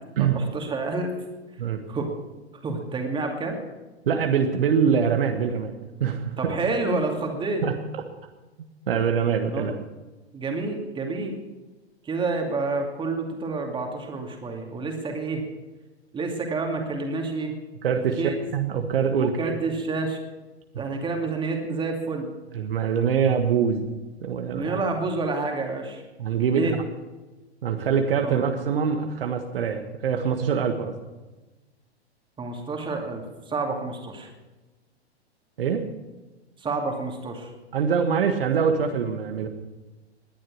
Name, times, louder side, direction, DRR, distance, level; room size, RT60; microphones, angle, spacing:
voice 1, 0.2-1.1 1.9-2.1 2.6-3.6 6.4-7.6 9.5-9.7 10.3-11.4 12.0-15.4 16.1-17.5 18.2-18.4 19.2-20.2 20.8-22.3 24.5-26.0 26.5-26.7 28.2-28.4 32.4-34.3 36.6-37.5, right 3 dB, 15° right, 2 dB, 2.5 m, -29 dB
voice 2, 4.1-5.7 6.0-6.5 7.6-7.7 8.9-9.7 17.8-19.5 20.7-20.8 22.5-23.9 24.2-24.8 26.2-26.8 27.6-31.0 35.6-35.9 37.7-39.5, right 7 dB, 55° right, 5 dB, 1.5 m, -24 dB
19.5 x 10.5 x 6.3 m, 1.1 s
figure-of-eight pair, 105°, 33 cm